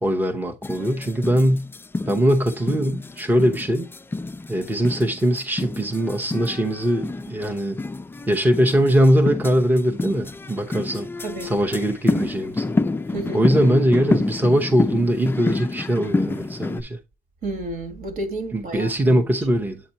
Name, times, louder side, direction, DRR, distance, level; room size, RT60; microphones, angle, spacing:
voice 1, 0.0-1.7 2.1-3.9 4.5-7.8 8.3-11.1 11.4-12.7 13.3-17.0 18.5-19.8, equal, 10° right, 0.8 m, -21 dB
sound 1, 0.6-16.8, left 3 dB, 15° left, 0.3 m, -28 dB
voice 2, 13.1-13.5 17.4-19.3, right 2 dB, 60° right, 1.8 m, -31 dB
8.2 x 4.2 x 2.8 m
cardioid pair, 110°, 17 cm